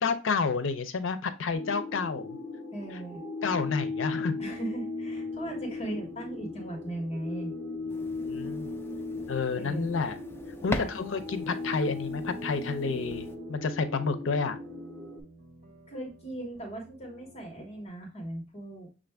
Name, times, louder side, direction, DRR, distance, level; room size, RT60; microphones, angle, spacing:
voice 1, 0.0-2.4 3.4-4.4 8.2-8.8 9.3-10.2 10.6-14.6, left 4 dB, 75° left, 11 dB, 0.5 m, -30 dB
sound 1, 1.5-15.2, left 3 dB, 65° right, 1.3 m, -37 dB
voice 2, 2.7-3.2 4.4-7.5 9.6-9.9 10.6-10.9 15.9-18.9, right 1 dB, 35° left, 1 dB, 1.2 m, -38 dB
sound 2, 4.5-17.9, right 1 dB, 40° right, 1.5 m, -55 dB
sound 3, 7.9-13.4, left 2 dB, 10° left, 0.4 m, -41 dB
6.3 x 2.5 x 3.3 m, 0.30 s
head